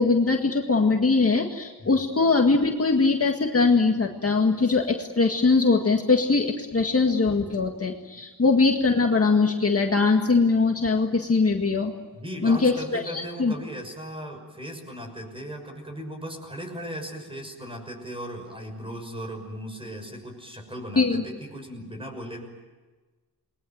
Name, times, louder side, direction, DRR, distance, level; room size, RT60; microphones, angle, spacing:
voice 1, 0.0-11.9 12.4-13.5 21.0-21.2, left 4 dB, 35° left, 2 dB, 1.9 m, -21 dB
voice 2, 12.1-22.4, equal, 15° right, 4 dB, 6.1 m, -37 dB
29.5 x 21.5 x 9.3 m, 1.3 s
wide cardioid pair, 160°, 38 cm